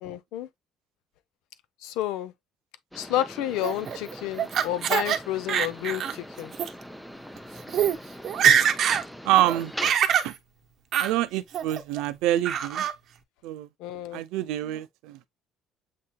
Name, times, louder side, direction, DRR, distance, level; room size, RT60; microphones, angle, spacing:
voice 1, 0.0-0.5 1.8-2.3 2.9-6.5 13.8-14.2, left 13 dB, 90° left, 0.5 m, -30 dB
sound 1, 2.9-9.9, equal, 5° left, 0.5 m, -41 dB
Laughter, 3.6-5.2 5.5-6.2 6.5-6.7 7.4-7.5 7.7-8.0 8.2-9.0 9.4-10.3 10.9-11.1 11.5-12.0 12.4-12.9, right 8 dB, 50° right, 0.7 m, -24 dB
voice 2, 9.2-9.7 10.2-10.3 11.0-12.9 13.4-13.7 14.1-15.2, right 14 dB, 90° right, 0.5 m, -26 dB
7.6 x 2.9 x 2.2 m
cardioid pair, 140°, 0 cm